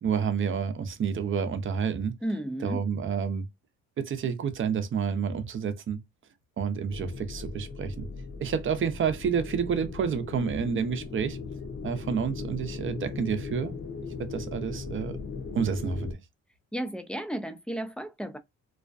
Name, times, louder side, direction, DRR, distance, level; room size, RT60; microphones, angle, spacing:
voice 1, 0.0-2.1 2.6-3.4 4.0-6.0 6.6-8.1 8.4-11.4 11.8-13.7 14.2-15.2 15.5-16.2, right 6 dB, 45° right, 0.6 m, -29 dB
voice 2, 2.2-2.8 16.7-18.4, right 1 dB, 5° left, 0.4 m, -33 dB
sound 1, 6.9-16.1, left 4 dB, 45° left, 0.8 m, -38 dB
2.4 x 2.2 x 2.3 m
cardioid pair, 90°, 30 cm